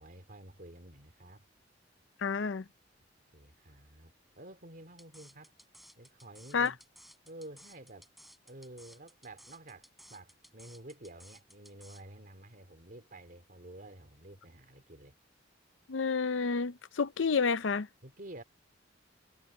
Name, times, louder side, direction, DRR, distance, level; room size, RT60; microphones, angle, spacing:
voice 1, 0.0-1.4 3.3-5.5 6.0-6.8 7.2-8.1 8.5-15.2 18.0-18.4, right 1 dB, 50° right, 3.0 m, -50 dB
voice 2, 2.2-2.6 6.5-6.7 15.9-17.9, left 5 dB, 80° left, 0.6 m, -29 dB
sound 1, 5.0-12.0, equal, ahead, 4.3 m, -57 dB
head